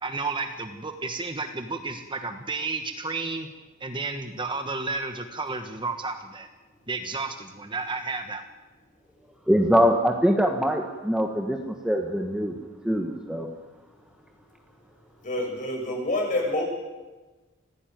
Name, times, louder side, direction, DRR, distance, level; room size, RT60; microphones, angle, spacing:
voice 1, 0.0-3.5 3.8-6.5 6.9-8.4, right 3 dB, 25° right, 6 dB, 1.2 m, -32 dB
voice 2, 9.5-12.5 12.8-13.5, equal, 5° right, 3 dB, 1.4 m, -23 dB
voice 3, 15.2-16.6, left 1 dB, 40° left, 0 dB, 7.5 m, -27 dB
25.5 x 16.5 x 9.3 m, 1.2 s
head